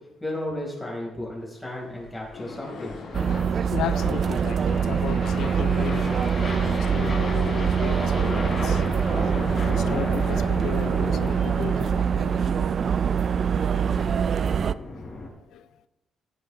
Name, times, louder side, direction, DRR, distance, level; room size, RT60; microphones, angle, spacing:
voice 1, 0.2-3.0, left 1 dB, 10° left, -3 dB, 4.7 m, -34 dB
sound 1, 1.9-15.3, left 2 dB, 35° left, 4.4 m, -35 dB
sound 2, 2.3-14.1, left 3 dB, 65° left, 2.8 m, -39 dB
sound 3, 3.1-14.7, right 7 dB, 50° right, 0.3 m, -24 dB
voice 2, 3.7-8.9 9.6-12.1 15.5-15.8, left 9 dB, 85° left, 14 dB, 0.6 m, -35 dB
16.0 x 10.0 x 3.3 m, 0.97 s
cardioid pair, 120°, 0 cm